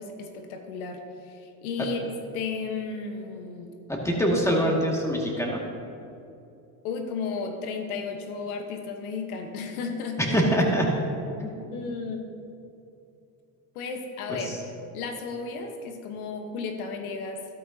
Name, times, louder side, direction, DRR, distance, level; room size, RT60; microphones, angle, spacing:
voice 1, 0.0-3.8 6.8-10.4 11.7-12.3 13.7-14.5 14.9-17.4, left 4 dB, 90° left, 4 dB, 1.4 m, -34 dB
voice 2, 3.9-5.6 10.3-10.9 11.4-11.5 14.3-14.4, equal, 5° left, -2 dB, 2.2 m, -24 dB
13.0 x 12.5 x 2.9 m, 2.7 s
supercardioid pair, 105°, 42 cm